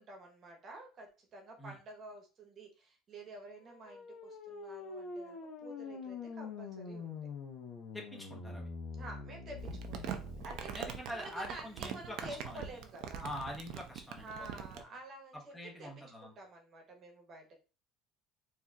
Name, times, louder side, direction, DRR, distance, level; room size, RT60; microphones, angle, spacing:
voice 1, 0.0-7.2 9.0-10.7 11.1-13.3 14.2-15.5 15.8-15.9 16.2-17.6, right 2 dB, 40° right, 3 dB, 1.0 m, -50 dB
sound 1, 3.6-10.7, left 4 dB, 60° left, 0.9 m, -45 dB
voice 2, 7.9-8.7 10.7-12.7 13.2-14.5 15.3-16.3, left 1 dB, 10° left, 0 dB, 1.0 m, -44 dB
Crumpling crinkling, 9.6-14.8, right 8 dB, 65° right, 0.5 m, -43 dB
4.2 x 2.7 x 2.3 m, 0.33 s
cardioid pair, 125°, 0 cm